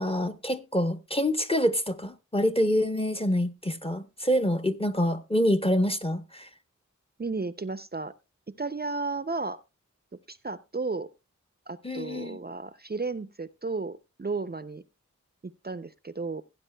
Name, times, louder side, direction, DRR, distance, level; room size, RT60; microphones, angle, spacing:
voice 1, 0.0-6.5 11.8-12.4, equal, 20° left, 0.8 m, -26 dB
voice 2, 7.2-8.1 8.5-9.6 10.3-11.1 11.7-14.8 15.6-16.4, right 3 dB, 30° right, 0.5 m, -33 dB
16.5 x 9.6 x 2.2 m
wide cardioid pair, 60°, 31 cm